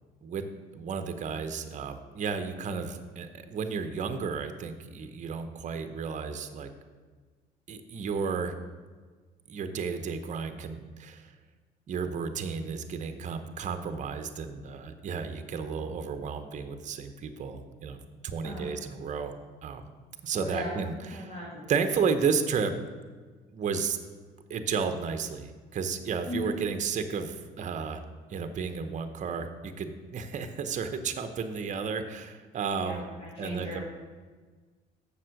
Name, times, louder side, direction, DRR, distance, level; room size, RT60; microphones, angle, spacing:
voice 1, 0.7-6.7 7.7-8.5 9.5-11.3 11.9-19.3 19.6-19.8 20.2-21.3 21.7-22.8 23.5-24.0 24.5-28.0 28.3-33.0 33.4-33.8, right 5 dB, 45° right, 8 dB, 0.9 m, -32 dB
voice 2, 20.3-20.8 21.1-21.7 26.3-26.5 32.7-33.8, left 1 dB, 35° left, -4 dB, 2.0 m, -37 dB
7.4 x 6.7 x 6.5 m, 1.4 s
cardioid pair, 110°, 17 cm